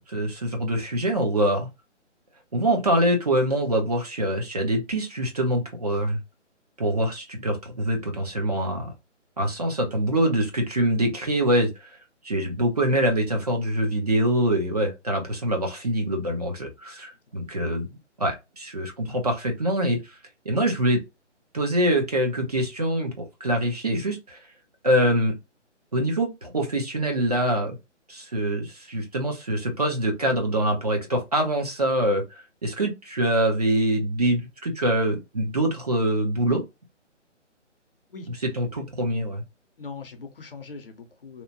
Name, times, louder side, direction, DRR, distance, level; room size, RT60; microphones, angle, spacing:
voice 1, 0.1-1.7 2.5-6.2 6.8-8.9 9.4-11.9 12.2-17.9 18.2-20.2 20.5-21.0 21.5-24.4 24.8-25.3 25.9-27.8 28.1-36.6 38.3-39.4, right 1 dB, 35° right, 0.5 m, -24 dB
voice 2, 38.1-38.4 39.8-41.4, left 4 dB, 50° left, 0.6 m, -41 dB
2.8 x 2.1 x 2.6 m
figure-of-eight pair, 150°, 37 cm